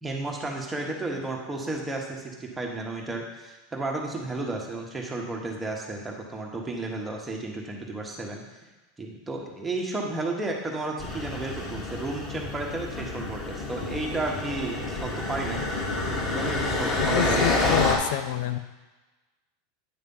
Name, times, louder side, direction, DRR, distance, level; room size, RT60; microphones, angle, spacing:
voice 1, 0.0-8.4 9.0-15.7 16.3-17.6, right 2 dB, 10° right, 0 dB, 1.2 m, -33 dB
sound 1, 11.0-18.0, left 2 dB, 35° left, 1.4 m, -28 dB
voice 2, 17.0-18.6, left 11 dB, 70° left, 10 dB, 0.4 m, -27 dB
9.3 x 3.2 x 5.5 m, 1.2 s
supercardioid pair, 135°, 0 cm